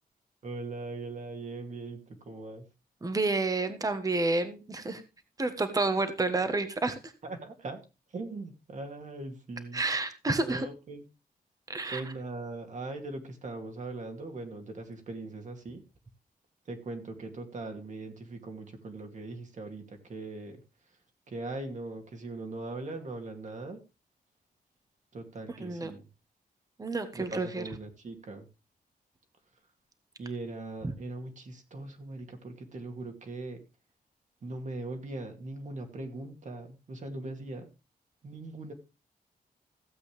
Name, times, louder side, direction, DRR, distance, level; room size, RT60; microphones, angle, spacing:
voice 1, 0.4-2.7 7.2-7.8 8.1-9.8 10.4-11.0 11.9-15.8 16.6-21.0 21.3-23.8 25.1-26.1 27.1-28.5 30.2-33.6 34.4-37.7 38.2-38.7, right 2 dB, 50° right, 4 dB, 2.5 m, -40 dB
voice 2, 3.0-5.0 5.4-7.1 9.7-10.7 11.7-12.0 25.6-25.9 26.8-27.6, right 3 dB, 20° right, 9 dB, 1.4 m, -29 dB
15.5 x 8.1 x 3.3 m, 0.29 s
wide cardioid pair, 145°, 16 cm